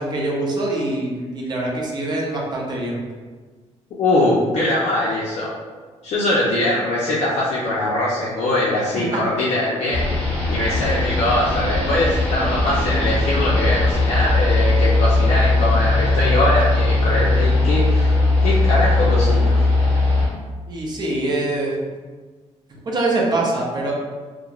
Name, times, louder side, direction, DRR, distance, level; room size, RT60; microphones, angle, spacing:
voice 1, 0.0-3.0 9.0-9.2 12.3-12.9 20.7-21.8 22.8-23.9, right 2 dB, 35° right, -2 dB, 0.5 m, -24 dB
voice 2, 4.0-5.5 6.0-18.2 18.4-19.6, left 1 dB, 60° left, -6 dB, 0.4 m, -22 dB
sound 1, 9.9-20.3, left 2 dB, 15° left, 1.0 m, -19 dB
2.9 x 2.0 x 2.3 m, 1.4 s
cardioid pair, 135°, 12 cm